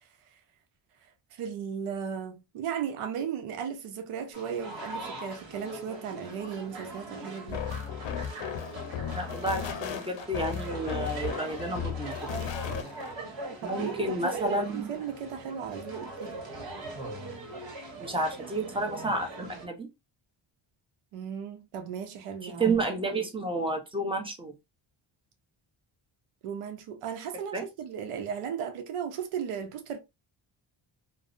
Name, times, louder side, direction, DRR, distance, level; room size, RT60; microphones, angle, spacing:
voice 1, 1.3-7.6 13.6-16.4 21.1-22.7 26.4-30.0, right 7 dB, 85° right, 0.7 m, -36 dB
sound 1, 4.3-19.7, right 2 dB, 65° right, 1.2 m, -41 dB
sound 2, 7.5-13.1, left 8 dB, 60° left, 0.6 m, -35 dB
voice 2, 9.1-12.4 13.6-14.9 18.0-19.9 22.4-24.5 27.5-27.6, right 2 dB, 10° right, 0.6 m, -31 dB
2.6 x 2.0 x 2.4 m
cardioid pair, 95°, 50 cm